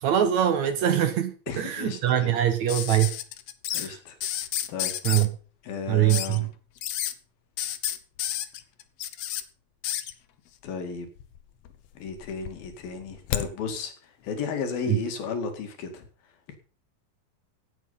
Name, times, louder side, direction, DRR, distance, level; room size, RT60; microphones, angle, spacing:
voice 1, 0.0-3.1 3.7-4.0 5.0-5.3 5.9-6.5 14.9-15.0, right 11 dB, 65° right, 2.0 m, -23 dB
voice 2, 1.5-2.4 3.7-4.2 4.7-5.0 5.6-6.5 10.6-11.1 12.0-16.0, left 5 dB, 85° left, 4.1 m, -34 dB
sound 1, 2.7-3.9 4.2-5.3 6.1-6.4 6.8-7.1 7.6-9.4 9.8-10.1 11.2-11.8 12.1-13.5 14.8-14.9, left 11 dB, 70° left, 1.7 m, -31 dB
17.0 x 8.8 x 5.6 m
omnidirectional pair, 4.1 m